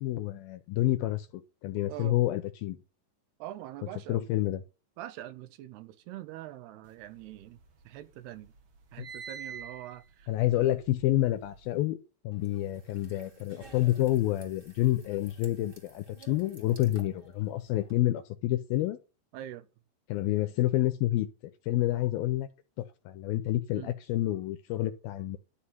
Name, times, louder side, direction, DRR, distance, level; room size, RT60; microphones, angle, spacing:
voice 1, 0.0-2.8 4.1-4.6 10.3-12.0 12.2-19.0 20.1-22.5 22.8-25.4, left 14 dB, 80° left, 2.3 m, -29 dB
voice 2, 3.4-4.2 5.0-7.6 7.9-8.5 8.9-10.7 19.3-19.7 23.7-24.0, right 13 dB, 80° right, 2.8 m, -43 dB
sound 1, 7.0-8.1 8.4-11.8, right 6 dB, 50° right, 2.2 m, -46 dB
sound 2, 12.3-17.9, right 3 dB, 20° right, 1.8 m, -55 dB
13.0 x 4.6 x 8.6 m
omnidirectional pair, 4.9 m